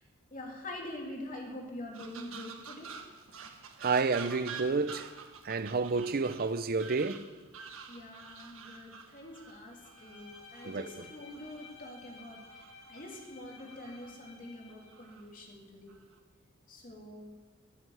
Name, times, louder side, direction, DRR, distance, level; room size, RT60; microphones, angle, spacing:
voice 1, 0.3-3.0 7.9-12.4 12.9-15.9 16.7-17.3, left 1 dB, 40° left, 3.0 m, -45 dB
sound 1, 1.9-11.7 12.2-13.2 13.6-14.1 14.7-15.2 15.9-16.2, right 5 dB, 85° right, 1.5 m, -48 dB
voice 2, 3.8-5.1 5.4-7.3 10.6-10.8, right 4 dB, 45° right, 0.6 m, -30 dB
Bowed string instrument, 9.7-15.1, left 3 dB, 75° left, 3.7 m, -54 dB
15.5 x 7.8 x 8.0 m
head